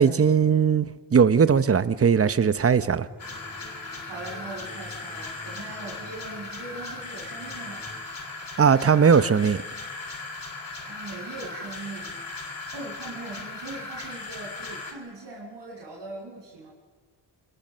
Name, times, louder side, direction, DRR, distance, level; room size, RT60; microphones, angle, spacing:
voice 1, 0.0-3.1 8.6-9.6, right 6 dB, 30° right, 0.9 m, -19 dB
sound 1, 3.1-8.0, left 1 dB, 5° right, 5.5 m, -49 dB
sound 2, 3.2-14.9, left 3 dB, 45° left, 3.3 m, -38 dB
voice 2, 4.0-7.8 10.8-12.2 12.7-16.7, right 2 dB, 60° right, 6.4 m, -40 dB
27.0 x 22.0 x 6.8 m
cardioid pair, 90°, 47 cm